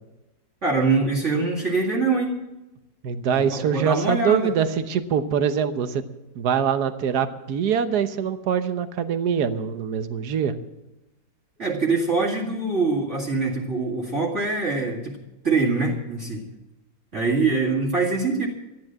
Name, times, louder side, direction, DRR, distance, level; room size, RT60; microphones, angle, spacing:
voice 1, 0.6-2.4 3.3-4.5 11.6-15.2 15.4-16.4 17.1-18.5, right 3 dB, 40° right, -4 dB, 2.5 m, -24 dB
voice 2, 3.0-6.0 6.3-10.5, right 7 dB, 65° right, 11 dB, 1.4 m, -24 dB
14.0 x 10.5 x 7.5 m, 1.0 s
omnidirectional pair, 2.0 m